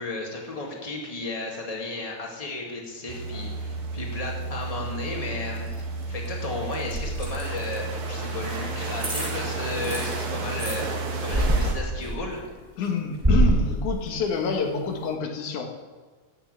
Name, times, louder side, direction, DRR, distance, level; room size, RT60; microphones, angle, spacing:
voice 1, 0.0-5.7 6.1-10.9 11.2-12.4, left 2 dB, 15° left, -1 dB, 2.2 m, -34 dB
sound 1, 3.1-11.7, right 3 dB, 75° right, 3.2 m, -32 dB
sound 2, 4.3-5.2 5.5-7.8 8.5-8.6 9.0-9.3 9.7-10.8 11.3-12.4 12.8-14.4 14.8-14.9, right 1 dB, 15° right, 0.8 m, -25 dB
voice 2, 12.8-15.7, left 5 dB, 90° left, 2 dB, 3.0 m, -28 dB
16.0 x 6.7 x 8.3 m, 1.4 s
omnidirectional pair, 3.3 m